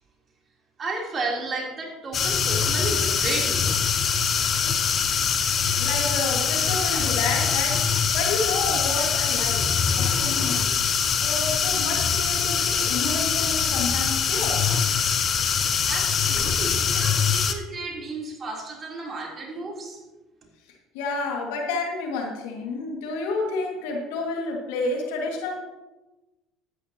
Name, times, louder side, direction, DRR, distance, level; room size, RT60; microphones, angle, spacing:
voice 1, 0.8-3.7 6.9-7.0 11.1-11.4 15.9-20.0, right 3 dB, 40° right, -1 dB, 3.5 m, -33 dB
sound 1, 2.1-17.5, left 7 dB, 45° left, 1.0 m, -23 dB
voice 2, 5.8-7.8 8.1-9.6 9.9-10.8 11.2-14.7 20.9-25.6, left 3 dB, 80° left, 1 dB, 2.1 m, -30 dB
13.0 x 10.0 x 3.0 m, 1.1 s
hypercardioid pair, 70°, 0 cm